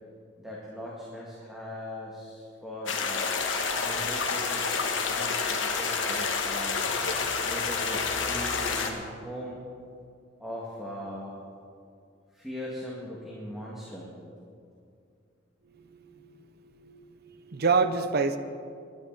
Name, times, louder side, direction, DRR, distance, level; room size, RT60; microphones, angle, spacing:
voice 1, 0.4-3.3 3.8-4.6 5.0-6.8 7.4-9.6 10.4-11.3 12.3-14.1, equal, 5° right, -5 dB, 1.8 m, -40 dB
sound 1, 2.9-8.9, left 5 dB, 80° left, 1.5 m, -29 dB
sound 2, 6.7-9.5, left 2 dB, 45° left, 1.9 m, -44 dB
voice 2, 15.8-16.3 16.8-18.4, right 4 dB, 55° right, 11 dB, 0.7 m, -28 dB
22.5 x 10.5 x 4.0 m, 2.4 s
head